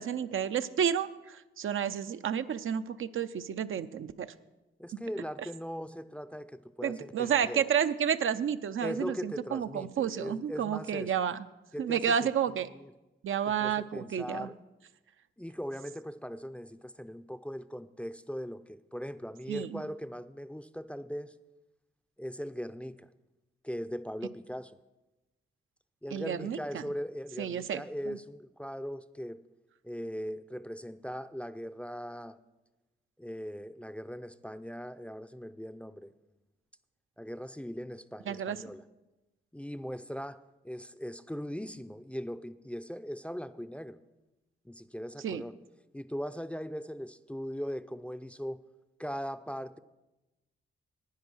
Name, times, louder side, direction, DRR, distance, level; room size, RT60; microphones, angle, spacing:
voice 1, 0.0-4.3 4.9-5.0 6.8-11.4 11.8-12.7 13.2-14.5 19.5-19.8 26.1-26.8 27.4-28.2 38.3-38.6 45.2-45.4, right 8 dB, 75° right, 11 dB, 0.5 m, -31 dB
voice 2, 4.8-7.6 8.8-11.1 11.7-12.3 12.7-12.9 13.5-14.6 15.4-21.3 22.2-23.1 23.6-24.8 26.0-29.4 29.8-32.4 33.2-36.1 37.2-38.8 39.5-40.4 40.6-44.0 44.7-45.5 45.9-48.6 49.0-49.8, equal, 5° left, 13 dB, 0.4 m, -39 dB
10.5 x 9.4 x 6.2 m, 1.0 s
cardioid pair, 75°, 21 cm